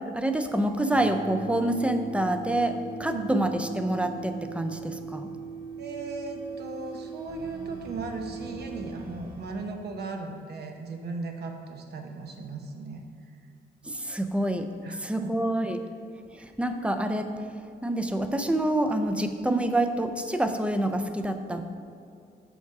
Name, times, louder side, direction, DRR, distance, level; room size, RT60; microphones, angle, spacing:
voice 1, 0.1-5.3 13.8-14.7 15.0-15.8 16.3-17.3 17.8-21.6, right 1 dB, 5° right, 7 dB, 0.4 m, -27 dB
sound 1, 0.9-9.0, right 5 dB, 85° left, 0.7 m, -40 dB
sound 2, 4.9-9.6, equal, 30° right, 1.3 m, -47 dB
voice 2, 5.8-13.0 14.8-15.3 16.4-16.5, right 3 dB, 65° right, 4 dB, 0.8 m, -37 dB
7.1 x 5.9 x 4.7 m, 2.5 s
cardioid pair, 120°, 18 cm